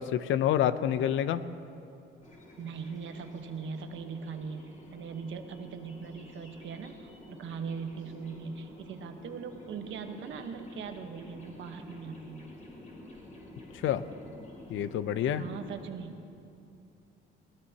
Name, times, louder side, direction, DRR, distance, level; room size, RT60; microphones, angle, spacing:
voice 1, 0.0-1.4 13.8-14.0 14.7-15.4, left 10 dB, 80° left, 13 dB, 0.6 m, -27 dB
sound 1, 2.2-15.9, left 1 dB, 40° left, 3.8 m, -50 dB
voice 2, 2.6-12.4 15.4-16.2, right 6 dB, 75° right, 6 dB, 1.1 m, -40 dB
22.0 x 17.0 x 2.9 m, 2.8 s
cardioid pair, 90°, 20 cm